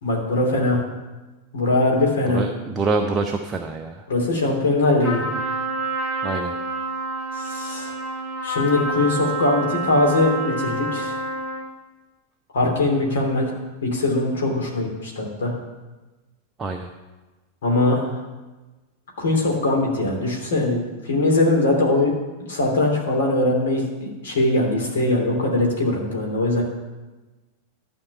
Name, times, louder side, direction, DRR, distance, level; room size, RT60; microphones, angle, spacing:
voice 1, 0.0-0.8 1.5-2.5 4.1-5.2 7.4-7.9 8.4-11.2 12.5-13.5 13.8-15.5 17.6-18.1 19.2-22.1 22.5-26.6, left 2 dB, 60° left, -1 dB, 2.9 m, -21 dB
voice 2, 2.3-4.0 6.2-6.5 16.6-16.9, right 3 dB, 20° right, 4 dB, 0.7 m, -25 dB
Trumpet, 5.0-11.7, right 2 dB, 20° left, 3.8 m, -28 dB
12.0 x 4.5 x 8.2 m, 1.2 s
figure-of-eight pair, 90°, 0 cm